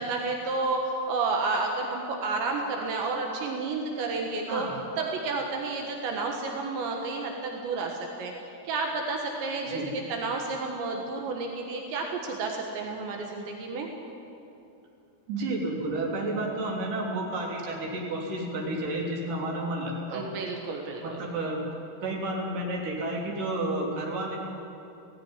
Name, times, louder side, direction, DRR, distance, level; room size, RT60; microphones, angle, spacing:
voice 1, 0.0-4.7 5.0-8.3 8.7-13.9 20.1-21.2, right 3 dB, 80° right, 1 dB, 3.8 m, -31 dB
voice 2, 15.3-20.2 21.0-21.6 22.0-24.4, right 2 dB, 50° right, -2 dB, 4.5 m, -31 dB
17.0 x 16.0 x 9.9 m, 2.7 s
omnidirectional pair, 5.1 m